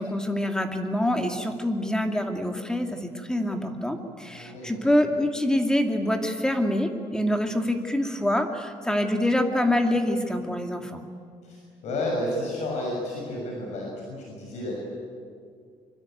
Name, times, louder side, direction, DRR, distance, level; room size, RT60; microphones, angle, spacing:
voice 1, 0.0-11.0, left 1 dB, 5° left, 4 dB, 2.4 m, -26 dB
voice 2, 4.2-4.8 11.4-14.7, left 1 dB, 70° left, -1 dB, 6.6 m, -31 dB
25.0 x 25.0 x 9.2 m, 2.3 s
cardioid pair, 135°, 12 cm